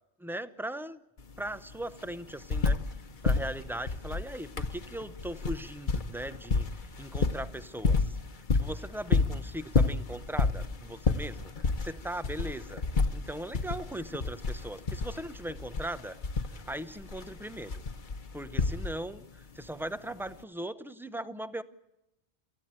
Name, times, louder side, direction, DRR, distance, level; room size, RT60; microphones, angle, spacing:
voice 1, 0.2-1.0 1.4-2.8 3.2-12.8 13.1-16.2 16.5-17.8 18.3-21.6, right 1 dB, ahead, 14 dB, 0.6 m, -39 dB
sound 1, 1.2-1.3 1.5-3.0 3.2-19.2 20.3-20.4, left 4 dB, 45° left, 1.1 m, -30 dB
28.0 x 15.0 x 8.8 m, 0.91 s
omnidirectional pair, 1.2 m